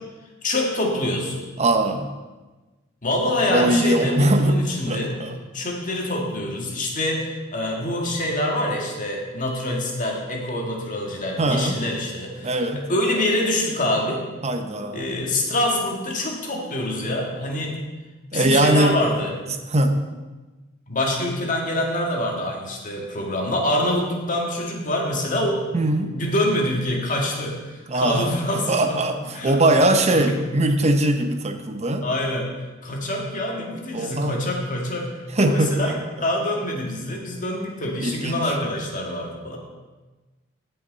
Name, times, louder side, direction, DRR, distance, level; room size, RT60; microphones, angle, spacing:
voice 1, 0.4-1.4 3.0-5.2 5.5-14.2 14.9-17.8 18.3-19.4 20.9-25.6 26.1-29.0 29.3-30.3 32.0-32.5 32.8-36.0 36.2-39.6, left 1 dB, 40° left, 0 dB, 1.9 m, -25 dB
voice 2, 1.6-2.1 3.5-4.6 4.9-5.3 11.4-11.8 12.4-12.8 14.4-15.1 18.3-19.0 19.5-20.0 25.7-26.2 27.9-28.3 28.7-32.1 33.9-34.4 35.3-36.0 38.0-38.4, right 1 dB, 35° right, 6 dB, 0.8 m, -21 dB
16.5 x 5.8 x 4.0 m, 1.2 s
head